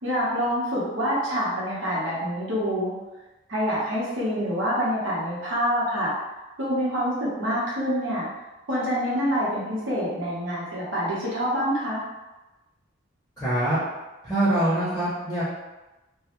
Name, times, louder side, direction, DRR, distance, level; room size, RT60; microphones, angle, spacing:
voice 1, 0.0-2.9 3.5-6.1 6.6-8.3 8.7-12.0, equal, 90° right, -7 dB, 0.9 m, -26 dB
voice 2, 13.4-13.8 14.2-15.4, right 1 dB, 15° left, -10 dB, 0.6 m, -24 dB
2.2 x 2.0 x 2.9 m, 1.1 s
head